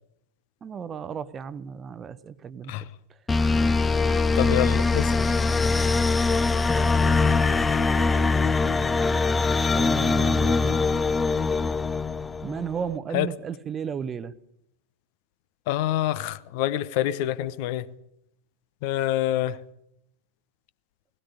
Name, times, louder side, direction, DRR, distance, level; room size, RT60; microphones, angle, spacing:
voice 1, 0.6-2.7 6.7-7.0 9.7-10.8 12.4-14.3, right 7 dB, 20° right, 0.9 m, -34 dB
sound 1, 3.3-12.7, left 4 dB, 15° left, 0.8 m, -22 dB
voice 2, 4.3-5.3 13.1-13.3 15.7-17.9 18.8-19.6, left 13 dB, 45° left, 0.9 m, -26 dB
19.0 x 16.5 x 9.6 m
figure-of-eight pair, 90°, 0 cm